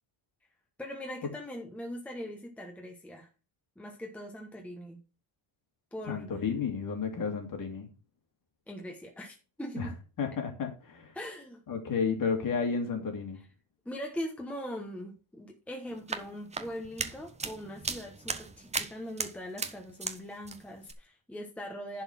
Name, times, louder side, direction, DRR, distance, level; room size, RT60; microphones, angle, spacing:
voice 1, 0.8-3.3 3.8-5.0 5.9-6.4 8.7-10.0 11.1-11.6 13.4-13.5 13.8-22.0, equal, 5° left, 1.1 m, -41 dB
voice 2, 6.1-7.9 9.8-9.9 10.2-11.1 11.7-13.4, left 5 dB, 45° left, 2.2 m, -32 dB
sound 1, 15.9-20.2 20.4-20.9, right 4 dB, 15° right, 0.5 m, -37 dB
11.0 x 4.2 x 5.7 m
cardioid pair, 175°, 47 cm